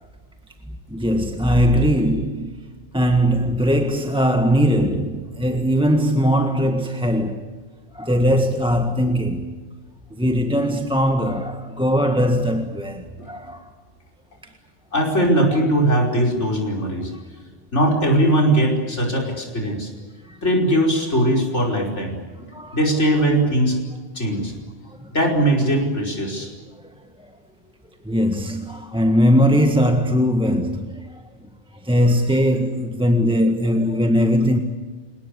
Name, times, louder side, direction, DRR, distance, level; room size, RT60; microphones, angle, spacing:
voice 1, 0.9-2.6 2.9-7.5 7.9-9.5 10.1-13.6 15.5-15.6 17.1-17.2 20.3-20.4 22.5-22.8 25.0-25.1 28.0-31.1 31.8-34.6, equal, 5° right, 1.6 m, -20 dB
voice 2, 14.9-17.1 17.7-19.9 20.4-22.1 22.7-23.8 24.2-24.5 25.1-26.5, right 1 dB, 85° left, 5.5 m, -20 dB
30.0 x 18.5 x 8.5 m
omnidirectional pair, 1.2 m